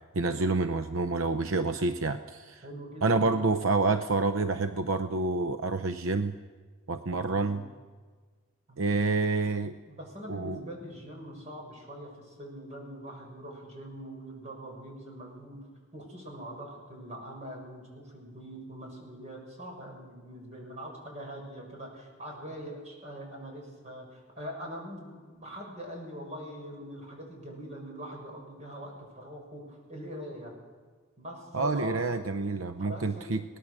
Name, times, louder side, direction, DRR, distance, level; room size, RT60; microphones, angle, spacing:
voice 1, 0.1-2.6 3.0-6.3 6.9-7.6 8.8-9.8 10.3-10.6 31.5-33.4, right 3 dB, 80° right, 10 dB, 0.7 m, -28 dB
voice 2, 2.6-3.4 7.1-7.6 8.7-8.8 9.9-15.6 15.9-30.5 31.2-32.0 32.8-33.4, equal, 35° right, 0 dB, 6.5 m, -43 dB
22.5 x 18.5 x 6.4 m, 1.5 s
head